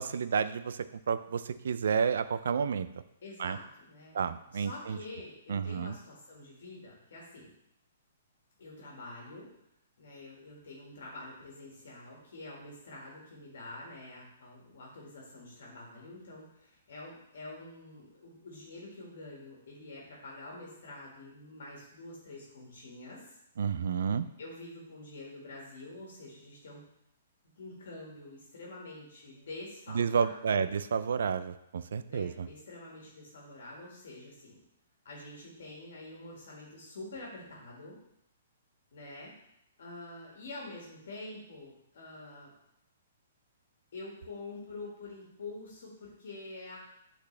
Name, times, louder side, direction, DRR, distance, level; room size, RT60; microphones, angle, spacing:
voice 1, 0.0-2.9 3.4-3.6 4.1-5.0 5.5-6.0 23.6-24.3 29.9-32.5, right 6 dB, 65° right, 13 dB, 0.3 m, -31 dB
voice 2, 3.2-4.2 4.5-7.5 8.6-9.5 10.0-23.4 24.4-26.8 27.6-30.7 32.1-34.6 35.0-38.0 38.9-39.3 39.8-42.5 43.9-46.8, left 2 dB, 60° left, -3 dB, 1.7 m, -47 dB
8.3 x 4.1 x 3.3 m, 0.81 s
hypercardioid pair, 180°, 0 cm